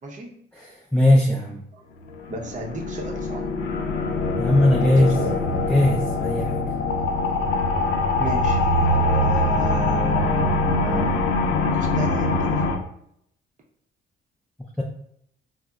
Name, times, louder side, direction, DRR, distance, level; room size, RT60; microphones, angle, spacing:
voice 1, 0.5-1.6 4.4-5.3 5.6-6.7 14.8-14.9, left 1 dB, 5° left, -4 dB, 0.4 m, -19 dB
sound 1, 2.1-12.7, left 2 dB, 80° left, 0.4 m, -23 dB
voice 2, 2.3-3.4 4.8-5.4 8.2-12.8, right 3 dB, 40° right, 0 dB, 0.7 m, -33 dB
3.9 x 2.0 x 2.3 m, 0.71 s
cardioid pair, 90°, 20 cm